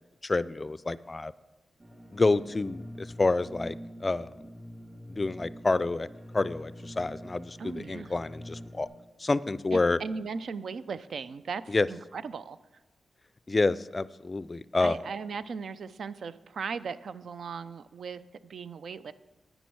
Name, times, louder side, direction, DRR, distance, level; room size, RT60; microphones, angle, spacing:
voice 1, 0.2-1.3 2.1-4.3 5.1-6.1 6.3-8.9 9.2-10.0 11.7-11.9 13.5-15.0, left 3 dB, 30° left, 17 dB, 0.3 m, -28 dB
sound 1, 1.8-8.9, equal, 30° right, 3.6 m, -45 dB
voice 2, 7.6-8.1 9.7-12.6 14.8-19.1, right 5 dB, 75° right, 14 dB, 0.4 m, -38 dB
10.5 x 9.0 x 4.7 m, 1.1 s
cardioid pair, 80°, 0 cm